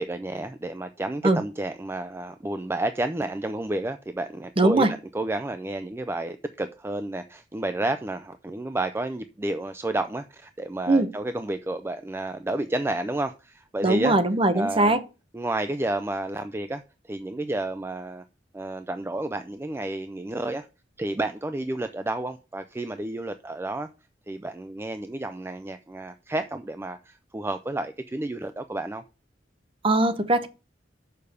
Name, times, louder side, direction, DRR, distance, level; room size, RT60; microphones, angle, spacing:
voice 1, 0.0-14.2 14.5-15.0 15.3-16.8 17.1-18.2 18.5-20.7 21.0-23.9 24.3-29.0, right 2 dB, 15° right, 0.4 m, -31 dB
voice 2, 4.6-4.9 10.9-11.1 13.8-15.0 29.8-30.5, right 2 dB, 30° right, 0.8 m, -20 dB
6.7 x 5.1 x 6.7 m
head